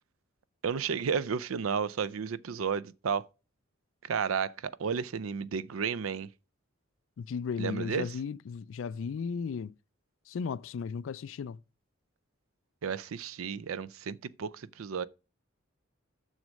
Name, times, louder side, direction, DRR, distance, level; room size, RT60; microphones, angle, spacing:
voice 1, 0.6-3.3 4.0-6.3 7.6-8.1 12.8-15.1, right 6 dB, 80° right, 0.5 m, -32 dB
voice 2, 7.2-9.7 10.3-11.6, left 6 dB, 65° left, 0.3 m, -35 dB
6.5 x 6.1 x 6.2 m
head